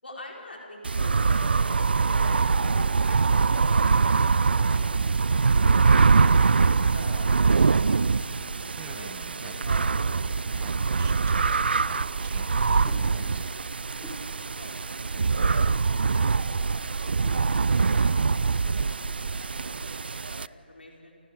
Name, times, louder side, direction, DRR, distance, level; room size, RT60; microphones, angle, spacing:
voice 1, 0.0-5.0 6.3-7.7 8.8-9.1 9.4-10.6 11.0-11.2 14.6-18.9 19.3-21.2, left 2 dB, 75° left, -2 dB, 5.5 m, -47 dB
sound 1, 0.8-20.5, right 4 dB, 65° right, 0.5 m, -23 dB
voice 2, 8.8-9.5 9.8-9.9 10.3-13.7, right 10 dB, 15° right, 11 dB, 1.1 m, -48 dB
sound 2, 12.9-13.1 14.0-14.2 15.6-15.8 17.2-17.4, equal, ahead, 4.7 m, -44 dB
29.5 x 27.5 x 4.9 m, 2.4 s
figure-of-eight pair, 140°, 6 cm